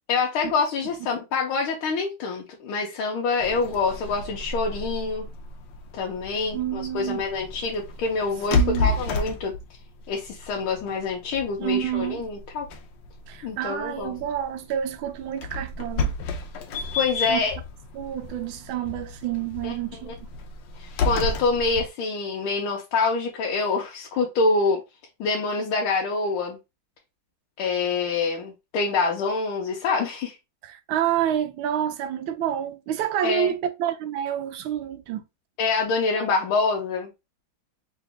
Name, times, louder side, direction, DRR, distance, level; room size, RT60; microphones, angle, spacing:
voice 1, 0.1-5.3 5.9-9.5 10.1-12.7 13.4-14.1 16.9-17.5 19.6-19.7 20.1-20.2 20.8-24.8 25.2-26.6 27.6-30.4 33.2-33.5 35.6-37.1, left 4 dB, 85° left, 1.6 m, -26 dB
sound 1, 3.4-21.9, left 3 dB, 70° left, 1.2 m, -32 dB
voice 2, 6.5-7.2 8.5-8.9 11.6-12.2 13.3-16.1 17.2-17.4 17.9-20.2 30.6-35.2, right 10 dB, 80° right, 1.3 m, -28 dB
3.9 x 2.9 x 3.4 m
omnidirectional pair, 2.3 m